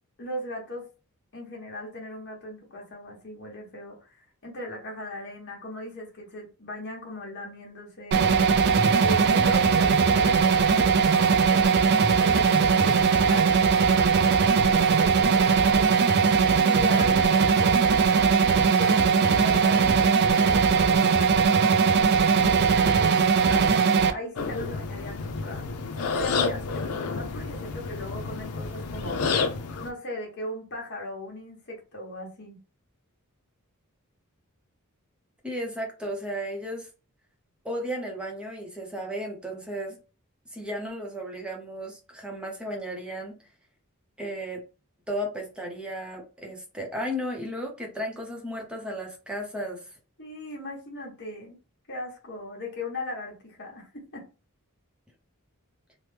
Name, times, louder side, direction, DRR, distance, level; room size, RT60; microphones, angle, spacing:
voice 1, 0.2-0.9 1.3-8.3 9.0-11.0 11.5-14.2 14.7-15.9 16.6-18.2 18.5-23.7 24.1-29.4 29.8-32.6 50.2-51.6 51.9-54.2, left 1 dB, 50° left, -1 dB, 1.3 m, -38 dB
sound 1, 8.1-24.1, right 5 dB, 50° right, 0.3 m, -20 dB
sound 2, 24.4-29.9, left 4 dB, 85° left, 0.5 m, -30 dB
voice 2, 35.4-36.9 37.6-40.0 40.5-43.4 44.2-44.6 45.1-49.9, equal, 5° right, 0 dB, 0.7 m, -34 dB
3.0 x 2.1 x 3.3 m, 0.34 s
head